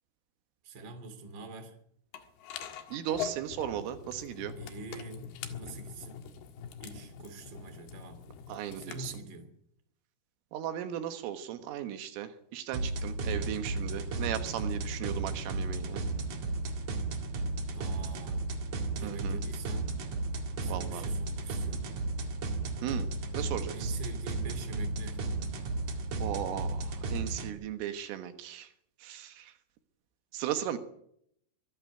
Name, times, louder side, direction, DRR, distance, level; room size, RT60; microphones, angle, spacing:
voice 1, 0.6-1.8 4.5-6.2 6.8-8.2 8.7-9.5 17.6-18.5 18.9-19.9 20.6-21.9 23.7-25.3, right 3 dB, 30° right, 7 dB, 3.0 m, -45 dB
sound 1, 2.1-9.2, left 8 dB, 60° left, 3.2 m, -43 dB
voice 2, 2.9-4.6 8.5-9.1 10.5-16.0 19.0-19.4 20.7-21.1 22.8-23.1 23.4-23.9 26.2-28.7 29.0-29.5 30.3-30.8, right 10 dB, 80° right, 8 dB, 3.9 m, -36 dB
sound 2, 12.7-27.5, right 2 dB, 50° right, 2.7 m, -34 dB
24.0 x 12.0 x 8.9 m, 0.71 s
omnidirectional pair, 5.9 m